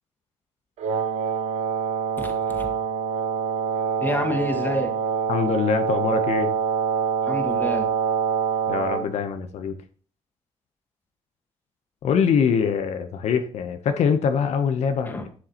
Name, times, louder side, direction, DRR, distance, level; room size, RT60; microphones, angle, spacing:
Wind instrument woodwind instrument, 0.8-9.1, right 6 dB, 90° right, 1.0 m, -25 dB
voice 1, 2.2-2.7 4.0-4.9 7.3-7.9 15.1-15.2, left 1 dB, 15° left, 3 dB, 1.9 m, -28 dB
voice 2, 5.3-6.5 8.7-9.8 12.0-15.3, left 6 dB, 80° left, 8 dB, 0.8 m, -23 dB
11.5 x 6.5 x 2.9 m, 0.43 s
cardioid pair, 105°, 11 cm